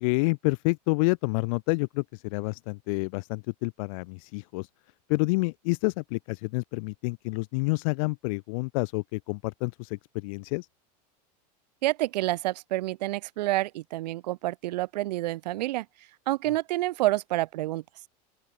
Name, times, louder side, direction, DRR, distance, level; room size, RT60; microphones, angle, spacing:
voice 1, 0.0-4.7 5.1-10.7, left 28 dB, 55° left, 0.8 m, -28 dB
voice 2, 11.8-15.8 16.3-17.8, right 17 dB, 85° right, 1.2 m, -28 dB
open air
supercardioid pair, 155°, 21 cm